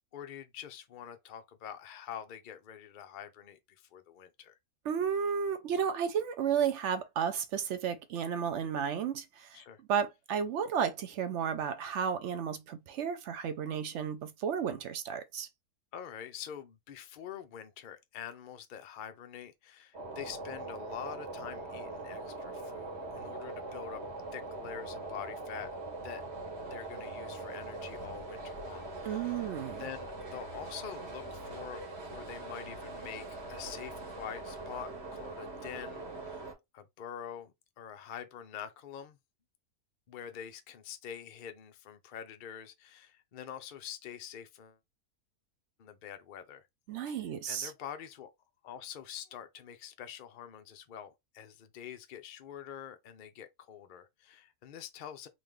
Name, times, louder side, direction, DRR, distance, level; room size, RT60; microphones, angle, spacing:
voice 1, 0.1-4.6 9.5-9.8 15.9-24.0 24.3-25.7 26.0-26.2 26.7-29.4 29.8-36.5 36.7-39.2 40.1-44.8 45.8-46.7 47.1-47.2 47.5-48.3 48.6-55.3, left 9 dB, 65° left, 0.5 m, -45 dB
voice 2, 4.8-9.6 9.9-15.5 29.0-29.8 46.9-47.7, right 7 dB, 65° right, 0.7 m, -33 dB
sound 1, 19.9-36.5, right 2 dB, 45° right, 1.6 m, -42 dB
3.8 x 2.7 x 3.2 m
omnidirectional pair, 1.6 m